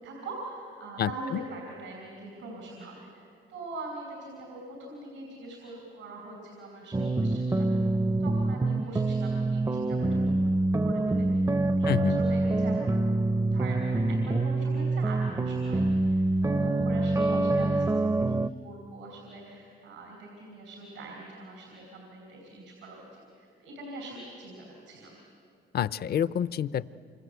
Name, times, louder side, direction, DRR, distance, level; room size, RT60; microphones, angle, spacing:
voice 1, 0.0-7.6 8.2-10.5 10.8-11.5 11.8-25.2, right 2 dB, 85° right, 0 dB, 5.0 m, -43 dB
sound 1, 6.9-18.5, right 2 dB, 15° right, 0.5 m, -26 dB
voice 2, 11.9-12.2 25.7-26.8, left 9 dB, 50° left, 17 dB, 0.6 m, -27 dB
27.0 x 25.5 x 8.1 m, 2.4 s
cardioid pair, 90°, 20 cm